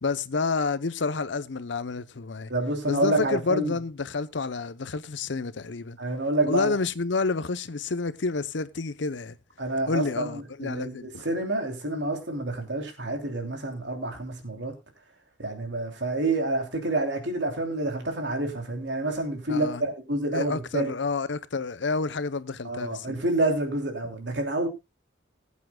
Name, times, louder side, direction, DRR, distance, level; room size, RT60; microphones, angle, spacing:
voice 1, 0.0-2.5 2.9-6.0 6.4-9.4 9.9-11.2 19.5-19.8 20.3-23.2, left 4 dB, 70° left, 0.7 m, -29 dB
voice 2, 2.5-3.7 6.0-6.7 9.6-14.7 15.4-20.9 22.6-24.7, right 2 dB, 65° right, 3.0 m, -28 dB
20.5 x 8.4 x 2.2 m
head